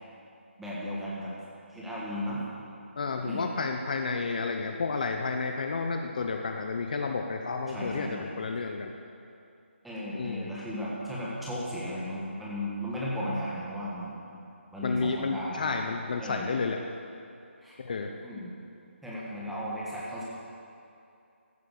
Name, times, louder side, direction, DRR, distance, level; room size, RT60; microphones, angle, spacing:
voice 1, 0.6-1.3 1.7-2.4 3.2-3.4 7.7-8.3 9.8-14.4 14.7-15.8 16.2-16.5 17.6-17.7 18.2-18.5 19.0-20.2, equal, ahead, -8 dB, 1.7 m, -35 dB
voice 2, 3.0-8.9 10.2-10.5 14.8-16.8 17.8-18.1, left 4 dB, 40° left, 4 dB, 0.9 m, -31 dB
15.0 x 11.5 x 6.7 m, 2.6 s
figure-of-eight pair, 170°, 7 cm